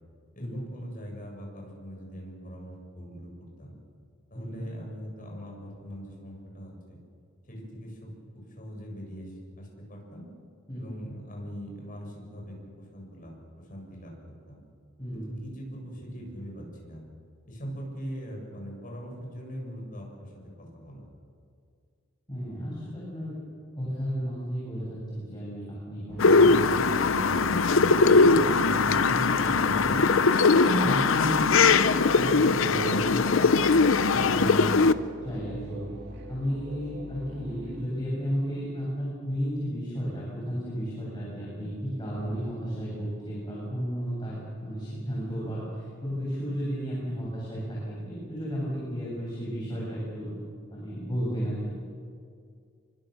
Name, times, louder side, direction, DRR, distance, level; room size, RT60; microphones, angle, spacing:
voice 1, 0.3-3.8 4.3-7.0 7.5-10.3 10.7-14.1 14.5-14.6 15.1-17.0 17.5-20.3 20.6-21.1 42.1-42.4, equal, 40° left, 0 dB, 6.9 m, -41 dB
voice 2, 4.3-4.7 10.7-10.9 15.0-15.4 22.3-23.4 23.8-30.0 30.5-31.9 32.1-33.6 34.1-34.8 35.2-35.8 36.3-50.3 50.7-51.8, equal, 20° left, -7 dB, 7.6 m, -33 dB
sound 1, 26.1-37.8, right 1 dB, 55° right, 2.9 m, -41 dB
sound 2, 26.2-34.9, left 4 dB, 70° left, 0.8 m, -21 dB
26.5 x 24.0 x 6.6 m, 2.3 s
head